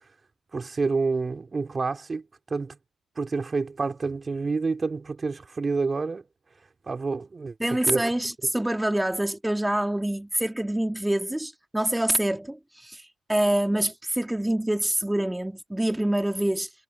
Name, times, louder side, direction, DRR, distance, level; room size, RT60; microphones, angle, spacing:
voice 1, 0.5-2.2 2.5-2.8 3.2-6.2 6.9-7.5 7.9-8.0, right 4 dB, 35° right, 3.2 m, -28 dB
voice 2, 7.6-16.7, right 1 dB, 10° right, 2.5 m, -26 dB
hypercardioid pair, 45°, 0 cm